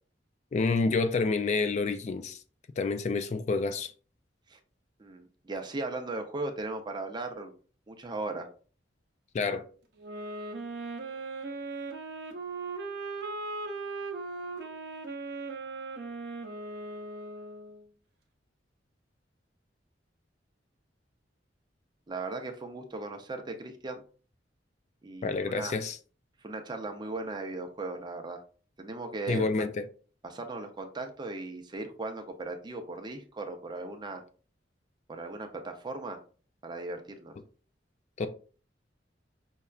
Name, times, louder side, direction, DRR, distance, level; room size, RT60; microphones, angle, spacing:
voice 1, 0.5-2.4 2.8-3.9 9.3-9.6 25.2-26.0 29.3-29.8 38.2-38.3, left 4 dB, 40° left, 0.3 m, -28 dB
voice 2, 5.0-7.5 7.9-8.5 22.1-24.0 25.0-25.8 26.4-28.4 28.8-29.4 30.2-34.2 35.1-36.2 36.6-37.3, right 2 dB, 25° right, 0.5 m, -37 dB
sound 1, 10.0-17.8, right 3 dB, 65° right, 0.6 m, -38 dB
5.4 x 2.3 x 2.3 m
head